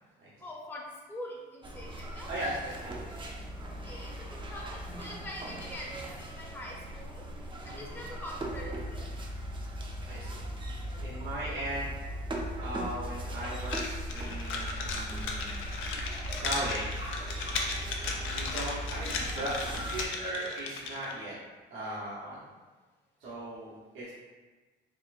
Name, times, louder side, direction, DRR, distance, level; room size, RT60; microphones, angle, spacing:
voice 1, 0.4-2.3 3.7-7.2 7.6-9.1, left 1 dB, 10° left, -3 dB, 0.6 m, -44 dB
sound 1, 1.6-20.1, equal, 25° right, 0.5 m, -38 dB
voice 2, 2.3-3.2 7.7-8.0 10.1-10.4 11.0-11.9 12.6-15.6 16.4-17.0 18.3-21.3 21.7-22.4 23.2-24.1, right 1 dB, 80° right, -10 dB, 0.9 m, -38 dB
sound 2, 13.7-21.2, left 4 dB, 80° left, 0.5 m, -36 dB
4.2 x 2.4 x 2.5 m, 1.3 s
cardioid pair, 90°, 20 cm